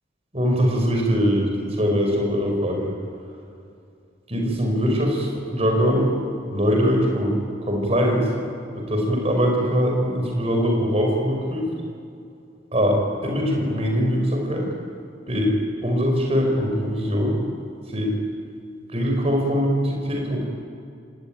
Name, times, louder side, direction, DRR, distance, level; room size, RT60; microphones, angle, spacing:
voice 1, 0.3-2.9 4.3-6.1 6.5-7.4 7.7-8.3 8.7-11.7 12.7-14.7 15.3-15.6 15.8-17.4 17.9-18.2 18.9-20.4, equal, 30° right, 1 dB, 5.7 m, -22 dB
28.0 x 20.0 x 9.2 m, 2.4 s
head